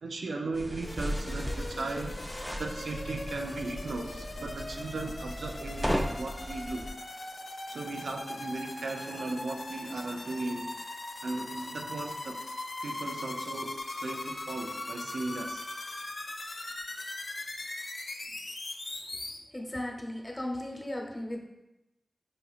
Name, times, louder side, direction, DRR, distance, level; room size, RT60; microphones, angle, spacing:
voice 1, 0.0-2.2 2.6-6.9 7.7-10.7 11.2-12.4 12.8-15.6 18.3-18.4, right 3 dB, 85° right, 3 dB, 0.4 m, -37 dB
sound 1, 0.5-6.9, equal, 10° right, 0.4 m, -36 dB
sound 2, 0.8-19.4, left 2 dB, 60° left, 0.4 m, -40 dB
voice 2, 19.5-21.5, left 1 dB, 25° left, 1 dB, 0.8 m, -36 dB
5.0 x 2.8 x 2.4 m, 0.92 s
cardioid pair, 45°, 0 cm